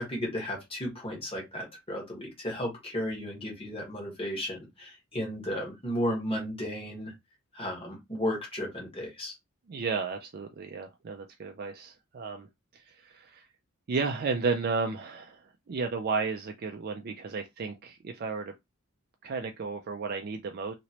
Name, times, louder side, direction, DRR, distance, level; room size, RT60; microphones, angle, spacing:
voice 1, 0.0-7.1 7.5-9.3, equal, 25° left, 1.3 m, -34 dB
voice 2, 9.7-12.5 12.7-13.5 13.9-18.5 19.2-20.7, right 4 dB, 45° right, 0.4 m, -33 dB
3.0 x 2.9 x 2.8 m
head